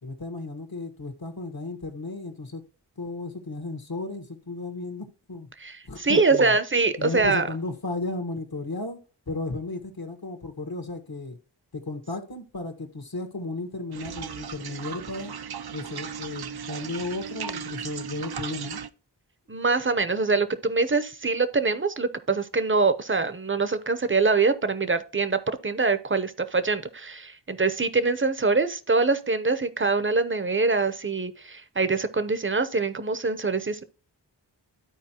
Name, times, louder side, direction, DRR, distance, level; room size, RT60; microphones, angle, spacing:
voice 1, 0.0-2.6 3.0-5.5 5.9-6.6 7.0-9.0 9.3-11.4 11.7-15.3 15.7-18.8, left 2 dB, 60° left, 1.4 m, -34 dB
voice 2, 5.6-7.5 19.5-33.9, right 3 dB, 30° right, 0.7 m, -24 dB
sound 1, 13.9-18.9, right 7 dB, 65° right, 0.6 m, -36 dB
13.0 x 4.5 x 2.9 m
wide cardioid pair, 50°, 42 cm